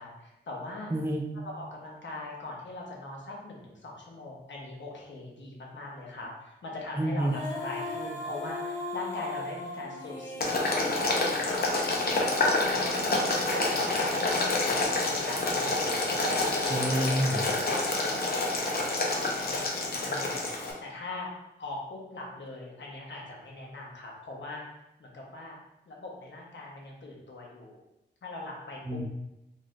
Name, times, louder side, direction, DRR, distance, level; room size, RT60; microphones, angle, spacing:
voice 1, 0.0-0.9 1.4-10.6 11.0-11.6 12.2-16.9 17.3-24.6 25.0-25.6 25.9-27.8 28.2-29.0, left 2 dB, 80° left, -2 dB, 0.9 m, -41 dB
voice 2, 0.9-1.2 7.0-7.3 16.7-17.4 28.9-29.0, right 1 dB, 10° right, 2 dB, 0.5 m, -28 dB
Female singing, 7.2-12.4, left 2 dB, 15° left, 1.4 m, -39 dB
Boiling, 10.4-20.7, left 2 dB, 55° left, 0.7 m, -28 dB
4.0 x 3.1 x 2.5 m, 0.88 s
wide cardioid pair, 130°, 19 cm